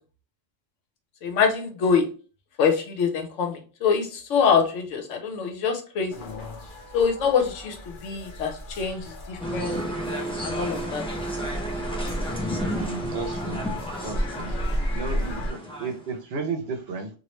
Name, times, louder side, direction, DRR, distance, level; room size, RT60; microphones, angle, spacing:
voice 1, 1.2-2.1 2.6-6.1 6.9-9.8 10.4-11.0, left 6 dB, 85° left, 5 dB, 1.1 m, -25 dB
sound 1, 6.1-15.5, equal, 50° left, 0.8 m, -34 dB
sound 2, 9.4-16.1, right 1 dB, 5° left, 0.4 m, -32 dB
voice 2, 12.8-13.6 14.0-14.5 14.9-17.1, right 4 dB, 65° right, 6 dB, 0.8 m, -33 dB
3.0 x 2.5 x 3.0 m, 0.37 s
omnidirectional pair, 1.3 m